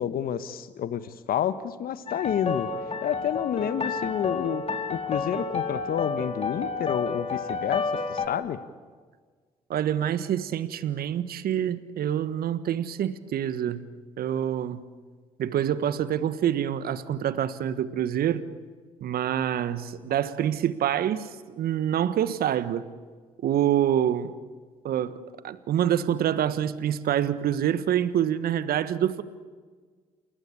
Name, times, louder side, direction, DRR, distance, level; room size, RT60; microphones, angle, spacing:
voice 1, 0.0-2.7 3.0-4.6 4.9-7.8 8.1-8.6, left 9 dB, 60° left, 1.2 m, -29 dB
sound 1, 2.1-8.3, left 4 dB, 35° left, 3.3 m, -30 dB
voice 2, 9.7-13.9 14.2-14.8 15.4-18.5 19.0-21.3 21.6-22.9 23.4-24.3 24.8-29.2, right 10 dB, 65° right, 1.4 m, -26 dB
28.0 x 20.5 x 8.6 m
hypercardioid pair, 50°, 17 cm